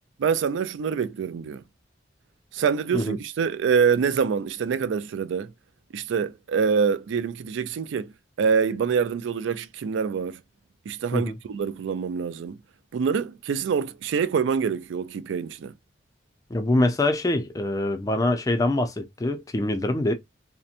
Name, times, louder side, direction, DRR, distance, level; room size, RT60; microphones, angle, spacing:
voice 1, 0.2-1.6 2.5-5.5 5.9-8.1 8.4-10.4 10.9-12.6 12.9-15.7, right 6 dB, 75° right, 0.3 m, -25 dB
voice 2, 16.5-20.1, left 1 dB, 20° left, 0.4 m, -24 dB
2.8 x 2.1 x 2.4 m
head